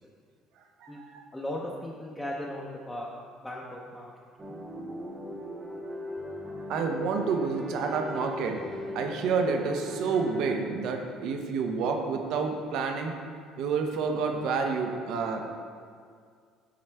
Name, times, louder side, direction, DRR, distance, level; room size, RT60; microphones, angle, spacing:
voice 1, 0.8-1.2 6.7-8.6 8.9-13.2 13.6-15.4, right 5 dB, 70° right, 4 dB, 0.7 m, -29 dB
voice 2, 1.3-3.1 3.4-4.1, left 1 dB, 10° left, -5 dB, 0.6 m, -36 dB
sound 1, 4.4-10.6, equal, 25° right, 0.7 m, -39 dB
7.5 x 4.3 x 3.4 m, 2.1 s
cardioid pair, 110°, 0 cm